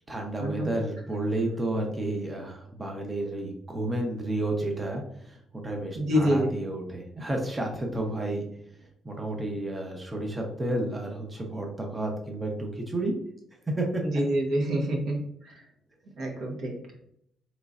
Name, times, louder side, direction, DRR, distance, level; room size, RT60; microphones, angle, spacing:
voice 1, 0.1-5.4 5.6-8.4 9.0-13.1 13.8-14.0, right 1 dB, 20° right, 1 dB, 0.7 m, -31 dB
voice 2, 6.0-6.5 14.0-15.2 15.4-15.6 16.2-16.7, equal, 70° right, 0 dB, 1.0 m, -26 dB
3.8 x 3.0 x 2.4 m, 0.72 s
cardioid pair, 90°, 0 cm